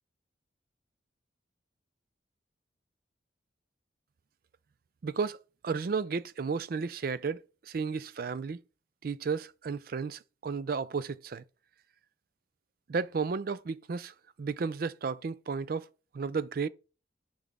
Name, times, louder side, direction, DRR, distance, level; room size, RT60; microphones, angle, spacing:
voice 1, 5.0-5.4 5.6-7.4 7.7-8.6 9.0-11.4 12.9-15.9 16.1-16.7, right 5 dB, 50° right, 0.4 m, -33 dB
5.8 x 4.9 x 3.5 m
head